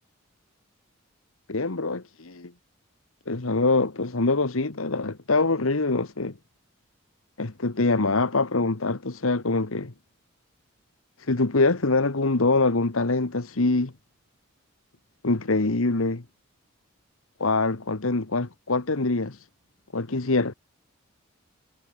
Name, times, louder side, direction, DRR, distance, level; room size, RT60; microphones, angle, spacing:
voice 1, 1.5-2.5 3.3-6.3 7.4-9.9 11.3-13.9 15.2-16.2 17.4-19.4 19.9-20.5, left 3 dB, 80° left, 1.4 m, -24 dB
head